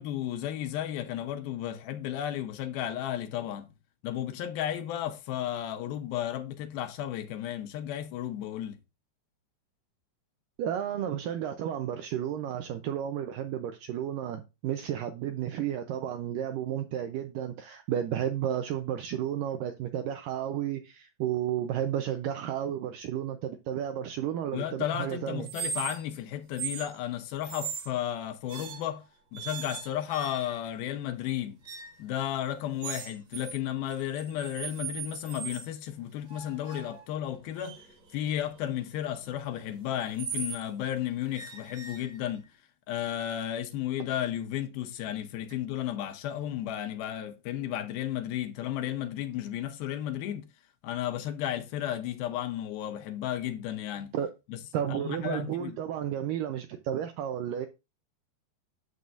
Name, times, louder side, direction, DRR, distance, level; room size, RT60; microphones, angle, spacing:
voice 1, 0.0-3.7 4.0-8.8 24.5-29.0 29.3-31.6 32.0-37.8 38.1-42.5 42.9-50.5 50.8-54.1 54.5-54.6 54.9-55.8, left 11 dB, 80° left, 2.4 m, -33 dB
voice 2, 10.6-25.5 54.1-54.3 54.7-57.7, right 10 dB, 80° right, 1.9 m, -32 dB
sound 1, 25.4-26.2 26.5-26.9 27.4-27.9 28.5-29.0 29.3-30.7 31.6-32.0 32.8-33.6 33.9-35.7 36.3-40.6 41.3-42.5, right 6 dB, 55° right, 2.1 m, -39 dB
9.4 x 7.8 x 2.5 m
omnidirectional pair, 4.6 m